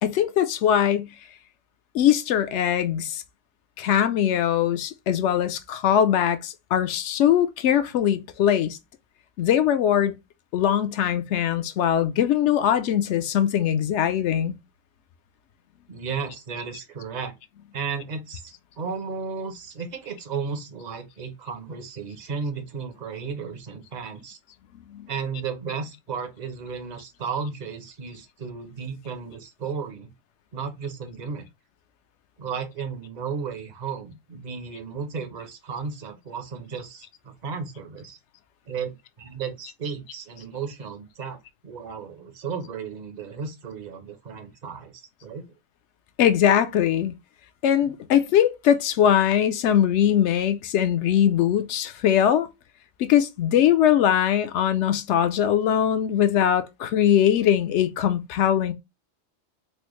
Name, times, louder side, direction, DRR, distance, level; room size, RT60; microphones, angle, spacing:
voice 1, 0.0-1.1 1.9-3.2 3.8-8.8 9.4-10.1 10.5-14.6 24.9-25.1 46.2-47.1 47.6-52.5 53.0-58.7, left 10 dB, 65° left, 0.8 m, -21 dB
voice 2, 15.9-17.3 17.7-24.4 25.1-30.1 30.5-31.5 32.4-38.2 38.7-44.9 45.2-45.5 47.8-48.0, right 5 dB, 45° right, 0.7 m, -34 dB
4.3 x 2.1 x 3.0 m
omnidirectional pair, 1.4 m